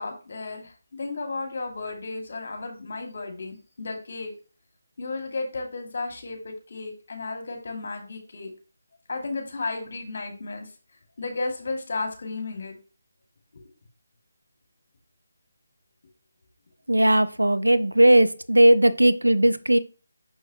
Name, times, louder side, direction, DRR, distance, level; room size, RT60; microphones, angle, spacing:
voice 1, 0.0-4.3 5.0-8.5 9.1-10.7 11.2-12.7 13.5-13.6, left 3 dB, 50° left, 2.4 m, -33 dB
voice 2, 16.9-19.8, right 1 dB, 85° right, 0.7 m, -18 dB
6.5 x 6.4 x 3.0 m
figure-of-eight pair, 155°, 0 cm